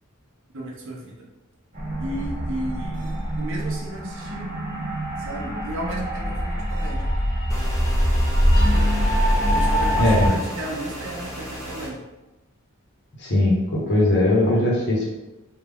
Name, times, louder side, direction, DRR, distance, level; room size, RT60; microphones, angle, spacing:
voice 1, 0.5-1.3 2.0-3.1 3.4-4.5 5.2-7.1 8.7-8.8 9.5-12.0, right 1 dB, 60° right, -2 dB, 0.6 m, -34 dB
sound 1, 1.7-10.3, equal, 40° right, 1.0 m, -23 dB
sound 2, 7.5-11.9, equal, 15° left, 0.9 m, -35 dB
voice 2, 10.0-10.3 13.2-15.1, left 1 dB, 55° left, -5 dB, 0.9 m, -19 dB
3.5 x 2.3 x 3.4 m, 1.0 s
head